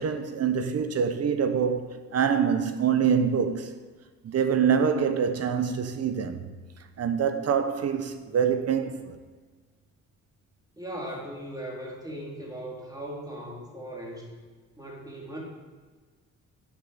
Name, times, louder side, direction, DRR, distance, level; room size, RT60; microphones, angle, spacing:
voice 1, 0.0-3.7 4.2-6.5 7.0-9.2, right 7 dB, 55° right, 1.0 m, -25 dB
voice 2, 10.8-14.3 14.8-15.4, right 1 dB, 10° right, 3.4 m, -38 dB
8.9 x 7.1 x 7.1 m
cardioid pair, 90°, 30 cm